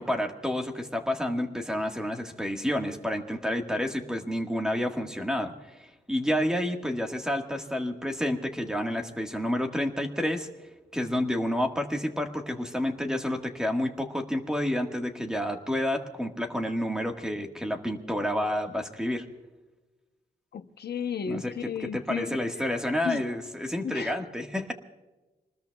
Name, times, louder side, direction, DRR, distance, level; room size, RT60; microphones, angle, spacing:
voice 1, 0.0-10.5 10.9-19.2 21.3-24.7, left 1 dB, 5° right, 3 dB, 1.6 m, -29 dB
voice 2, 20.5-22.4 23.0-23.2 23.8-24.2, left 7 dB, 75° left, 8 dB, 0.8 m, -33 dB
26.0 x 20.5 x 2.3 m, 1.1 s
wide cardioid pair, 155°, 17 cm